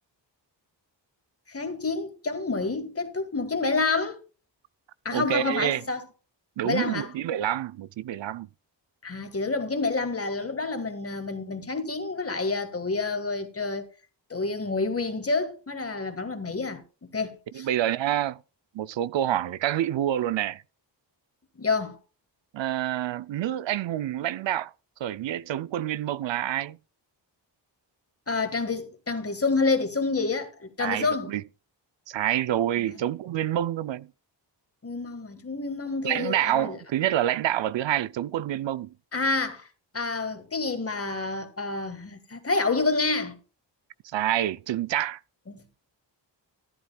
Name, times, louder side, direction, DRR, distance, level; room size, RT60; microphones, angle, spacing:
voice 1, 1.5-4.2 5.1-6.0 6.6-7.1 9.0-13.9 14.3-16.8 17.1-17.7 21.6-22.0 28.3-31.3 32.8-32.9 34.8-36.8 39.1-39.7 39.9-43.4, left 3 dB, 30° left, 1.7 m, -28 dB
voice 2, 5.1-5.8 6.6-8.5 17.5-18.4 18.7-20.6 22.5-24.7 25.0-26.8 30.8-31.4 32.1-34.1 36.0-38.9 44.0-45.2, right 12 dB, 80° right, 0.5 m, -27 dB
14.0 x 11.5 x 2.3 m
wide cardioid pair, 140°, 44 cm